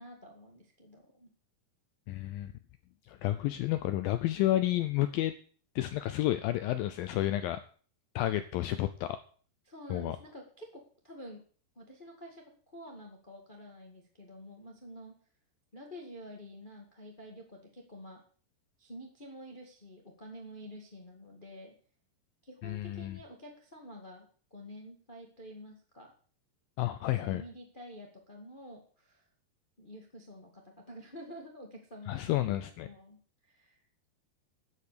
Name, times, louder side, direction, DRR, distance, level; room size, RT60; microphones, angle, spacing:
voice 1, 0.0-1.3 9.6-11.4 11.7-15.1 15.7-18.2 18.8-21.7 22.4-26.1 26.8-26.9 27.2-29.3 29.8-33.2 33.4-33.8, equal, 25° left, 0 dB, 1.0 m, -49 dB
voice 2, 2.1-2.5 3.1-5.3 5.8-7.6 8.2-9.2 9.9-10.2 22.6-23.2 26.8-27.4 32.1-32.9, left 14 dB, 85° left, 11 dB, 2.0 m, -31 dB
11.5 x 8.2 x 6.8 m, 0.43 s
omnidirectional pair, 4.8 m